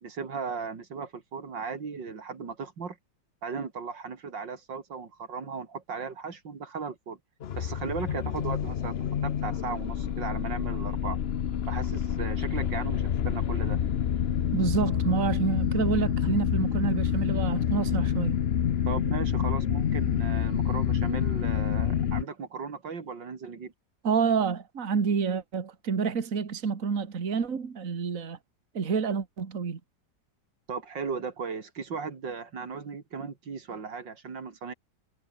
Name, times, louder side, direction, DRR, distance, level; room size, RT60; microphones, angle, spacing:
voice 1, 0.0-3.0 3.4-7.2 7.6-11.2 11.7-13.8 18.9-23.7 30.7-34.7, right 5 dB, 85° right, 3.4 m, -36 dB
sound 1, 7.4-22.2, left 9 dB, 55° left, 0.7 m, -28 dB
voice 2, 14.5-18.4 24.0-28.4 28.7-29.8, right 6 dB, 50° right, 2.2 m, -28 dB
omnidirectional pair, 1.9 m